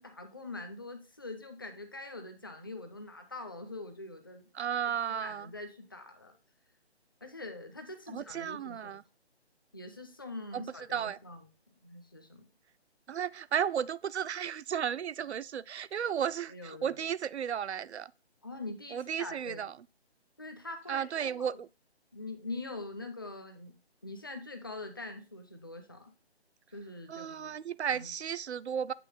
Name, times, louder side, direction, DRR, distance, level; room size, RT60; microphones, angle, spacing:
voice 1, 0.0-4.4 5.1-6.3 7.2-9.0 9.7-11.5 11.8-12.4 16.5-17.0 18.4-19.7 20.4-21.6 22.1-23.7 24.0-26.1 26.7-27.6 27.9-28.2, left 2 dB, 20° left, 0.5 m, -44 dB
voice 2, 4.5-5.5 8.1-9.0 10.5-10.6 10.9-11.2 13.1-18.1 18.9-19.7 20.9-21.7 27.1-28.9, right 8 dB, 85° right, 0.5 m, -34 dB
8.5 x 3.2 x 5.4 m
figure-of-eight pair, 160°, 33 cm